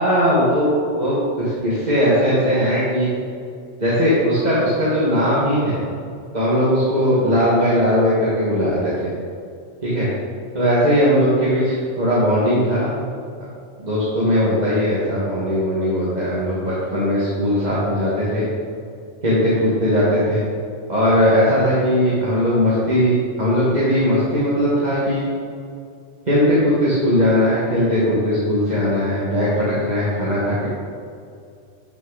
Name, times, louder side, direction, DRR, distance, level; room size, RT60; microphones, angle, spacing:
voice 1, 0.0-3.1 3.8-5.8 6.3-9.1 9.8-10.1 10.5-13.0 13.8-18.4 19.2-20.4 20.9-25.2 26.3-30.7, equal, 35° right, -9 dB, 1.9 m, -19 dB
12.0 x 6.6 x 4.0 m, 2.3 s
omnidirectional pair, 1.3 m